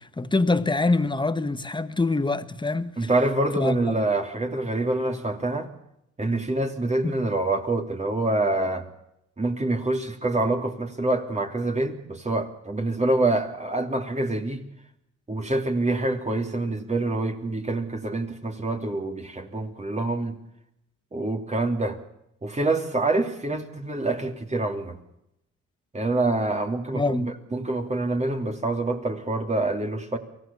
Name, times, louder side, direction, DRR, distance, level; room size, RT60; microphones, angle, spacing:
voice 1, 0.0-3.1 3.6-4.0 7.0-7.2 26.9-27.3, left 3 dB, 15° left, 1.5 m, -25 dB
voice 2, 3.0-5.7 6.2-8.9 9.4-14.6 15.3-20.4 21.1-22.0 22.4-25.0 25.9-30.2, right 2 dB, 20° right, 2.9 m, -26 dB
24.5 x 16.0 x 7.0 m
cardioid pair, 90°, 30 cm